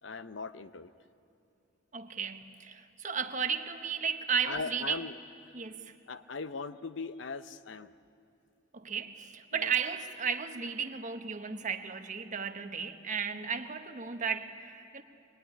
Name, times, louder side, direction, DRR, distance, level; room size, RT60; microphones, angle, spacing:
voice 1, 0.0-0.9 4.5-5.1 6.1-7.9 9.5-9.7, left 4 dB, 75° left, 0.8 m, -39 dB
voice 2, 1.9-5.0 5.5-5.9 8.7-15.0, right 6 dB, 40° right, 1.2 m, -34 dB
25.0 x 21.5 x 9.9 m
head